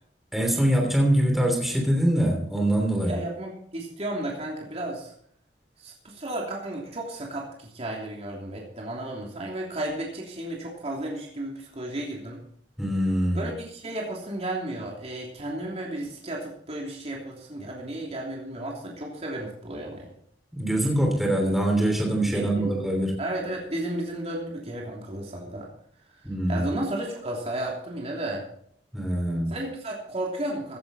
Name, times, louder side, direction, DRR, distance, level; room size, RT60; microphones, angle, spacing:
voice 1, 0.3-3.2 12.8-13.4 20.5-23.1 26.2-26.8 28.9-29.5, right 1 dB, ahead, 0 dB, 3.2 m, -23 dB
voice 2, 3.1-5.1 5.8-12.4 13.3-20.1 22.3-22.7 23.2-25.7 26.1-28.4 29.5-30.8, right 1 dB, 35° right, -1 dB, 3.1 m, -33 dB
16.0 x 11.0 x 4.2 m, 0.65 s
head